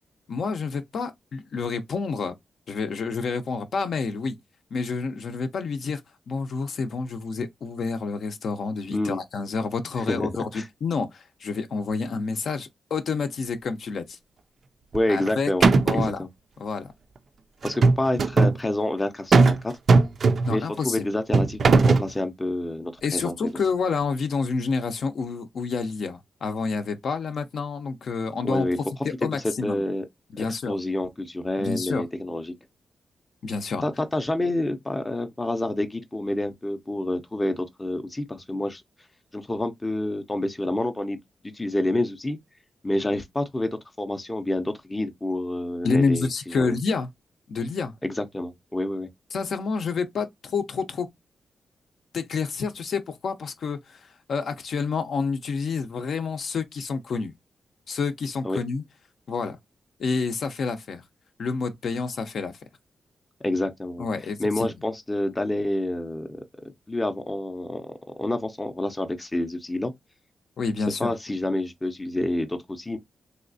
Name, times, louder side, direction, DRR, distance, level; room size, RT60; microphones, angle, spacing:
voice 1, 0.3-2.3 2.7-4.4 4.7-6.0 6.3-14.2 15.1-15.5 15.9-16.2 16.6-16.9 20.5-21.0 23.0-28.7 29.0-29.8 30.3-30.7 31.6-32.0 33.4-33.8 45.8-47.1 47.5-47.9 49.3-51.1 52.1-57.3 57.9-58.8 59.3-59.6 60.0-61.0 61.4-62.6 64.0-64.7 70.6-71.1, left 4 dB, 65° left, 0.5 m, -28 dB
voice 2, 10.1-10.7 14.9-16.3 17.6-19.7 20.5-23.5 28.4-28.8 29.2-30.0 30.4-32.5 33.8-38.8 39.3-41.2 41.5-42.4 42.8-43.7 44.0-46.8 48.0-49.1 58.4-58.6 63.4-64.1 64.4-66.4 66.9-67.9 68.2-69.9 71.0-73.0, left 1 dB, 15° left, 0.5 m, -28 dB
sound 1, 14.9-15.3 15.6-16.2 17.6-18.6 19.3-19.6 19.9-20.6 21.3-22.1, right 3 dB, 50° right, 0.3 m, -18 dB
3.2 x 2.8 x 2.6 m
wide cardioid pair, 125°, 0 cm